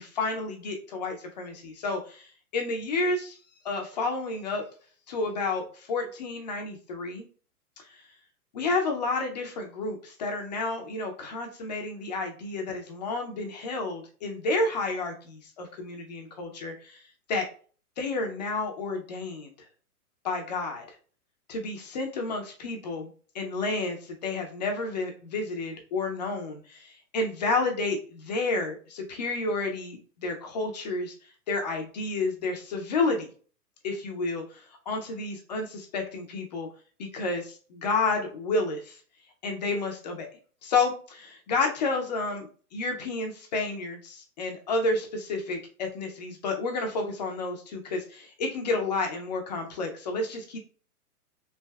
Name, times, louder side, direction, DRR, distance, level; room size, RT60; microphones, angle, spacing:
voice 1, 0.0-3.4 3.6-4.6 5.1-7.3 7.9-8.0 8.5-17.5 18.0-19.5 20.2-20.8 21.5-23.1 23.3-31.1 31.5-33.3 33.8-36.7 37.0-39.0 39.4-40.3 40.6-50.6, left 3 dB, 30° left, 3 dB, 0.4 m, -30 dB
3.3 x 2.5 x 2.2 m, 0.41 s
figure-of-eight pair, 115°, 46 cm